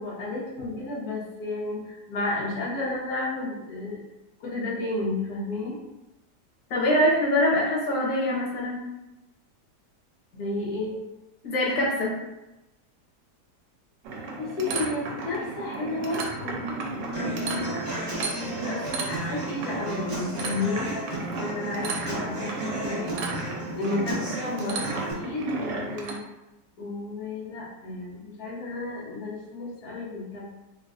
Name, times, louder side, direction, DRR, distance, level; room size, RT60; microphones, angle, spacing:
voice 1, 0.0-4.0 4.4-5.8 10.3-10.9 14.4-17.8 18.2-23.1 23.5-24.8 25.1-26.2 26.8-30.5, left 2 dB, 65° left, -6 dB, 1.4 m, -32 dB
voice 2, 6.7-8.8 11.4-12.1, left 1 dB, 90° left, -4 dB, 1.4 m, -23 dB
sound 1, 14.0-26.1, right 3 dB, 85° right, 1.3 m, -34 dB
Human voice / Acoustic guitar, 17.1-25.1, right 1 dB, 35° right, 0.6 m, -34 dB
3.6 x 2.5 x 2.4 m, 0.97 s
omnidirectional pair, 1.8 m